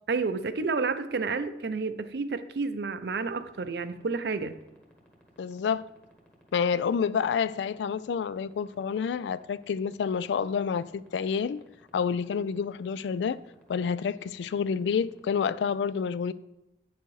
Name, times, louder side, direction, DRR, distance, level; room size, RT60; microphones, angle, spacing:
voice 1, 0.1-4.6, right 4 dB, 65° right, 0.5 m, -30 dB
sound 1, 3.3-15.6, equal, 5° left, 1.2 m, -58 dB
voice 2, 5.4-5.9 6.5-11.6 11.9-13.4 13.7-16.3, left 6 dB, 85° left, 0.3 m, -28 dB
8.8 x 6.9 x 3.1 m
head